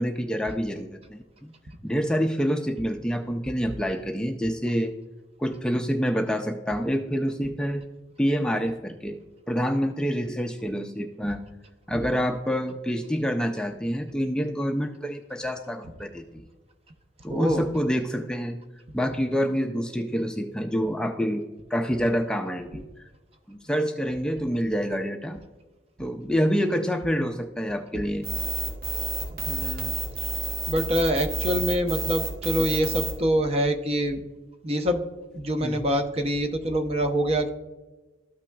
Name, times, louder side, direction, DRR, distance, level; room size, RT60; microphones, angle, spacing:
voice 1, 0.0-1.5 1.8-4.9 5.4-7.8 8.2-9.2 9.5-11.5 11.9-16.4 17.2-18.6 18.9-21.4 21.7-23.1 23.5-25.4 26.0-28.3 35.6-35.8, equal, 5° left, 4 dB, 0.4 m, -27 dB
voice 2, 17.3-17.7 27.9-28.0 29.3-30.0 30.7-34.2 34.6-35.0 35.3-37.5, equal, 35° right, 6 dB, 0.7 m, -25 dB
sound 1, 28.2-33.1, right 2 dB, 60° right, 1.9 m, -30 dB
13.0 x 5.8 x 2.3 m, 1.2 s
head